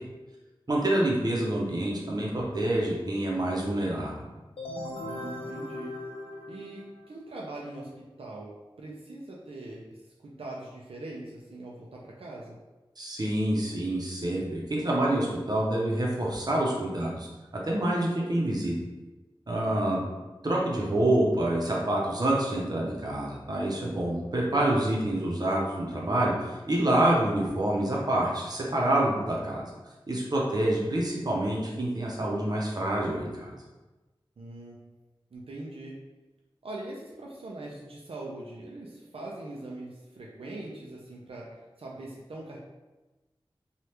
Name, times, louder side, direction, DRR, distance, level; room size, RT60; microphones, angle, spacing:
voice 1, 0.7-4.3 13.0-17.3 17.5-18.7 19.5-20.0 20.4-29.6 30.1-33.6, right 1 dB, 45° right, -3 dB, 0.7 m, -27 dB
sound 1, 4.6-7.2, left 1 dB, 80° left, 0.4 m, -38 dB
voice 2, 5.0-6.0 6.5-12.6 19.7-20.1 34.4-34.8 35.3-36.0 36.6-42.6, right 2 dB, 85° right, -3 dB, 0.4 m, -42 dB
3.2 x 2.4 x 2.9 m, 1.1 s
wide cardioid pair, 60°, 9 cm